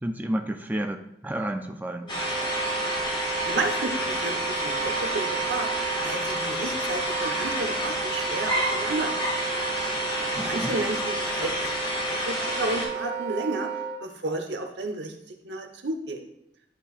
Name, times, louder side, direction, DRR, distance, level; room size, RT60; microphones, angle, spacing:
voice 1, 0.0-2.1 10.4-10.7, right 1 dB, 10° right, 5 dB, 0.4 m, -31 dB
Wind instrument woodwind instrument, 2.0-14.0, right 6 dB, 45° right, 2.0 m, -33 dB
sound 1, 2.1-12.9, equal, 30° left, 2.8 m, -29 dB
voice 2, 3.5-5.7 6.0-9.2 10.4-11.7 12.0-13.7 14.0-15.1 15.4-16.2, right 2 dB, 75° right, 4 dB, 1.0 m, -32 dB
10.5 x 5.5 x 2.5 m, 0.77 s
head